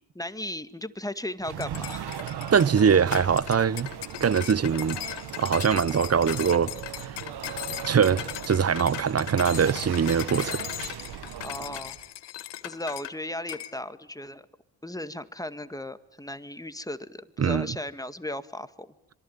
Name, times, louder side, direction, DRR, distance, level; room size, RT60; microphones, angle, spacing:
voice 1, 0.2-2.1 11.4-12.0 12.6-14.5 14.8-18.9, left 1 dB, 10° left, 1.9 m, -36 dB
sound 1, 1.4-12.0, right 9 dB, 65° right, 1.6 m, -38 dB
sound 2, 1.6-13.2 13.5-13.7, left 14 dB, 75° left, 1.3 m, -38 dB
voice 2, 2.5-3.9 4.2-5.0 5.4-6.7 7.9-10.6 17.4-17.8, right 7 dB, 35° right, 1.0 m, -22 dB
sound 3, 6.2-10.1, right 11 dB, 80° right, 1.3 m, -46 dB
26.0 x 23.5 x 9.1 m
hypercardioid pair, 50°, 42 cm